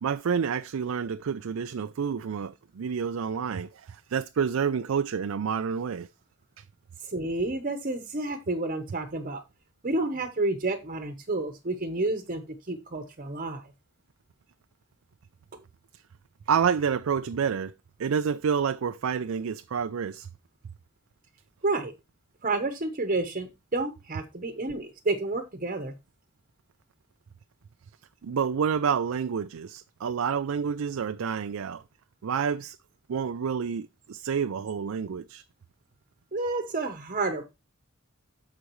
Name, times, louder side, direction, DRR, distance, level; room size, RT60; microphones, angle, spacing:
voice 1, 0.0-6.1 16.5-17.7 18.0-20.3 28.2-31.8 32.2-32.8 33.1-35.4, right 6 dB, 85° right, 0.4 m, -28 dB
voice 2, 7.0-9.4 9.8-13.7 21.6-21.9 22.4-25.9 36.3-37.4, right 2 dB, 40° right, 1.0 m, -30 dB
13.5 x 5.0 x 3.1 m
head